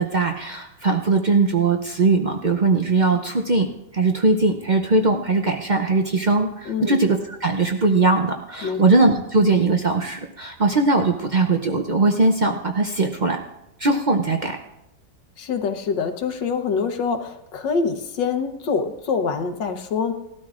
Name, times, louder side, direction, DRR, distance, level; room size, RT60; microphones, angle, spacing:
voice 1, 0.0-3.7 3.9-13.4 13.8-14.6, right 3 dB, 75° right, 4 dB, 0.4 m, -20 dB
voice 2, 6.6-7.0 8.6-8.8 15.4-20.1, left 5 dB, 75° left, 7 dB, 1.7 m, -25 dB
19.5 x 13.0 x 2.5 m, 0.87 s
omnidirectional pair, 1.9 m